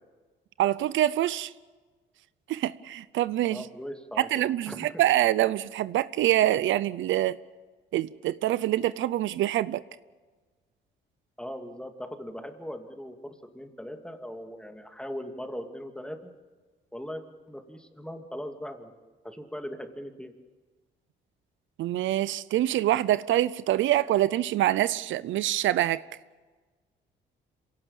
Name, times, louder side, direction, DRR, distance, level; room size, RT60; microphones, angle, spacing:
voice 1, 0.6-1.5 2.5-3.6 4.2-7.4 7.9-9.8 21.8-26.0, right 13 dB, 80° right, 17 dB, 0.6 m, -25 dB
voice 2, 3.5-4.9 11.4-16.3 16.9-20.3, equal, 5° left, 5 dB, 2.5 m, -40 dB
26.0 x 17.5 x 7.3 m, 1.3 s
cardioid pair, 90°, 20 cm